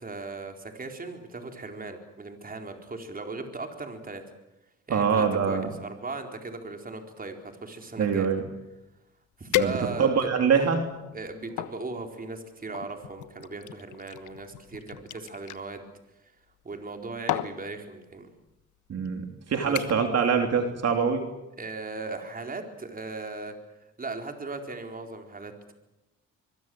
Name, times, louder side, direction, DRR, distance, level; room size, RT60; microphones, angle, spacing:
voice 1, 0.0-4.2 4.9-8.3 9.4-10.3 11.1-15.9 16.6-18.3 19.5-19.8 21.6-23.5 24.0-25.7, right 3 dB, 30° right, 4 dB, 4.3 m, -38 dB
voice 2, 4.9-5.7 8.0-8.4 9.5-10.8 18.9-21.2, right 6 dB, 55° right, 4 dB, 3.5 m, -24 dB
sound 1, 8.9-9.0 9.5-10.3 10.9-11.8 12.7-15.6 16.7-17.0 17.3-17.6 18.5-18.6 19.1-19.3 19.8-20.2 20.5-20.8 21.2-21.3, left 14 dB, 85° left, 1.3 m, -33 dB
24.5 x 23.0 x 7.9 m, 0.97 s
cardioid pair, 90°, 30 cm